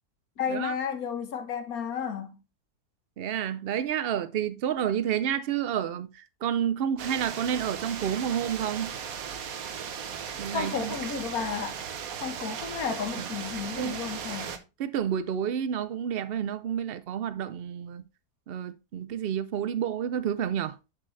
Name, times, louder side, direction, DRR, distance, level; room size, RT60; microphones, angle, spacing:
voice 1, 0.4-2.3 10.5-11.8 12.2-14.6, left 6 dB, 65° left, 1.7 m, -32 dB
voice 2, 3.2-8.9 10.4-10.9 13.1-13.3 13.8-14.0 14.8-18.0 18.5-20.8, right 9 dB, 85° right, 0.5 m, -30 dB
sound 1, 7.0-14.6, right 7 dB, 65° right, 1.3 m, -37 dB
7.5 x 6.3 x 3.2 m
omnidirectional pair, 1.7 m